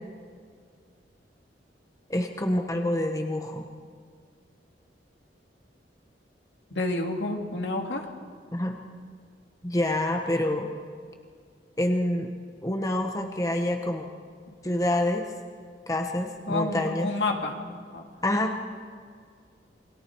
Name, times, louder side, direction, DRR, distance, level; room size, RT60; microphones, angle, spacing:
voice 1, 2.1-3.6 8.5-8.8 9.6-10.7 11.8-12.3 12.6-14.1 14.6-15.2 15.9-17.1 18.2-18.6, left 1 dB, 20° left, 4 dB, 1.2 m, -27 dB
voice 2, 6.7-8.0 16.5-18.0, left 2 dB, 75° left, 2 dB, 2.7 m, -29 dB
29.0 x 22.5 x 4.7 m, 2.1 s
head